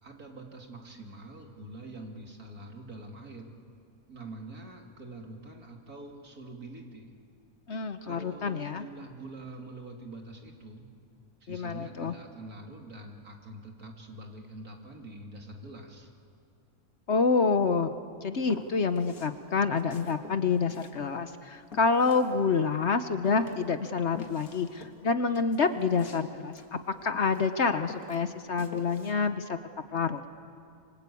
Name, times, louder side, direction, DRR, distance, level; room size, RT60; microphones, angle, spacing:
voice 1, 0.0-3.5 4.1-7.1 8.0-10.9 11.4-16.1, right 2 dB, 75° right, 1 dB, 3.3 m, -45 dB
voice 2, 7.7-8.8 11.5-12.1 17.1-17.9 18.2-29.6 29.9-30.2, left 4 dB, 50° left, 9 dB, 1.1 m, -27 dB
Walk footsteps, 18.4-19.4 19.7-22.8 23.2-27.5 27.8-29.1, left 4 dB, 65° left, 2.4 m, -47 dB
26.5 x 25.0 x 8.4 m, 2.3 s
omnidirectional pair, 1.6 m